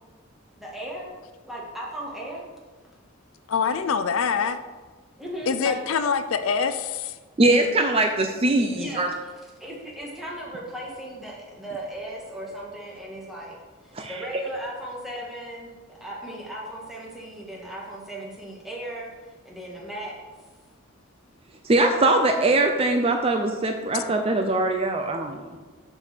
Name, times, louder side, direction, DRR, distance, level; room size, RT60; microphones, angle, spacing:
voice 1, 0.6-1.1 1.5-2.5 3.9-4.0 5.2-5.8 8.7-9.1 9.6-13.6 13.8-20.1 21.8-22.2, right 1 dB, ahead, -5 dB, 1.6 m, -36 dB
voice 2, 3.5-4.6 5.5-7.2 23.9-24.0, left 6 dB, 80° left, 11 dB, 0.5 m, -25 dB
voice 3, 7.4-9.1 13.9-14.1 21.6-25.5, right 2 dB, 30° right, 4 dB, 0.5 m, -22 dB
6.8 x 4.6 x 6.8 m, 1.3 s
head